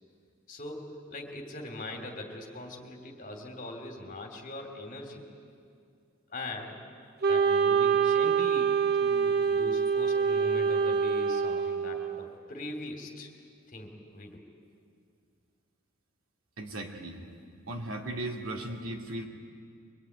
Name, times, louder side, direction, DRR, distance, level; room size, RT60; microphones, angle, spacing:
voice 1, 0.5-5.2 6.3-6.8 7.3-13.3 13.7-14.4, left 2 dB, 40° left, 2 dB, 3.0 m, -41 dB
Wind instrument woodwind instrument, 7.2-12.3, right 6 dB, 45° right, 0.9 m, -26 dB
voice 2, 16.6-17.2 17.7-19.2, right 1 dB, 80° right, 1 dB, 2.7 m, -36 dB
24.5 x 21.0 x 9.5 m, 2.3 s
head